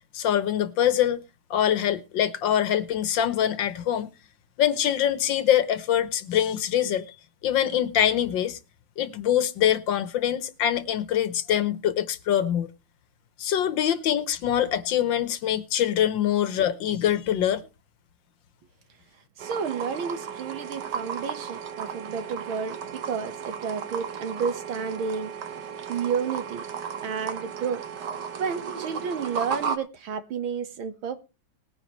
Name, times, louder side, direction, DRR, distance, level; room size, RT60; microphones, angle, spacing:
voice 1, 0.1-1.2 1.5-4.1 4.6-7.1 7.4-8.6 9.0-12.7 13.4-17.6, left 10 dB, 70° left, 1.6 m, -24 dB
sound 1, 19.4-29.8, right 6 dB, 60° right, 1.7 m, -35 dB
voice 2, 19.4-25.3 25.9-26.6 27.0-27.8 28.4-31.2, right 6 dB, 80° right, 2.1 m, -31 dB
19.5 x 9.8 x 3.1 m
omnidirectional pair, 2.2 m